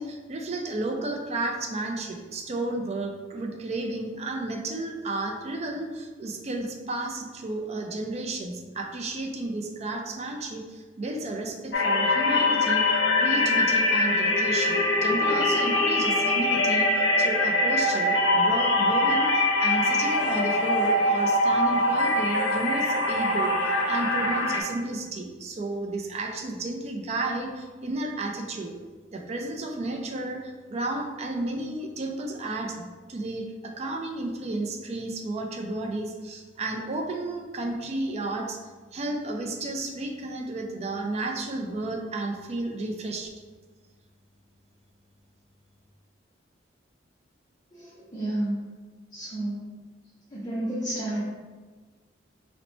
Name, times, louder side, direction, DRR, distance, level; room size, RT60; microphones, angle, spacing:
voice 1, 0.0-28.7 29.1-38.6 38.9-43.3, right 2 dB, 35° right, 2 dB, 0.4 m, -32 dB
sound 1, 11.7-24.6, left 2 dB, 85° left, 0.5 m, -23 dB
voice 2, 47.7-48.6 49.1-49.7 50.3-51.2, right 1 dB, 20° left, -8 dB, 0.6 m, -31 dB
3.0 x 2.1 x 3.9 m, 1.4 s
head